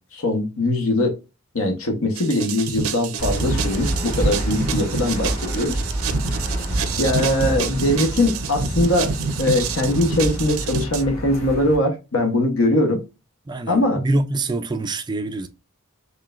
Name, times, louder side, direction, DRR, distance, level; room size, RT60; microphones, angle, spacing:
voice 1, 0.1-1.2 1.5-5.8 7.0-9.1 9.4-13.0 13.7-14.0, left 1 dB, 70° left, 1.0 m, -21 dB
sound 1, 2.2-11.0, right 5 dB, 75° right, 0.6 m, -28 dB
Aircraft / Engine, 3.2-11.8, right 1 dB, 30° left, 2.0 m, -27 dB
voice 2, 13.5-15.5, right 2 dB, 20° right, 0.3 m, -25 dB
4.6 x 3.2 x 2.4 m
head